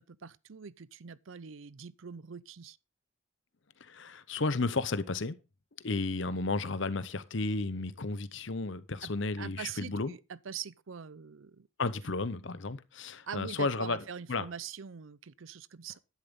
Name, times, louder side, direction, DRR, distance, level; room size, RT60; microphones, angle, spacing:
voice 1, 0.0-2.8 9.0-9.1 9.4-11.7 13.3-16.0, right 7 dB, 70° right, 0.6 m, -43 dB
voice 2, 3.8-5.4 5.8-10.1 11.8-14.5, left 3 dB, 60° left, 0.8 m, -33 dB
12.0 x 10.5 x 3.6 m
head